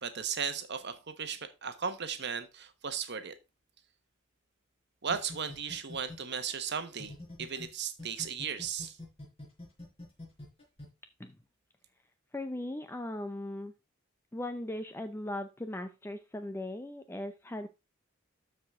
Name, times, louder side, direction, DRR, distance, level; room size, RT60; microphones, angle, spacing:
voice 1, 0.0-3.3 5.0-7.1 7.4-9.0, right 7 dB, 55° right, 1.1 m, -36 dB
sound 1, 5.1-7.7 8.0-10.8, left 2 dB, 30° left, 4.5 m, -45 dB
voice 2, 12.3-13.7 14.3-17.7, left 1 dB, 10° left, 0.5 m, -38 dB
12.5 x 4.9 x 3.6 m
head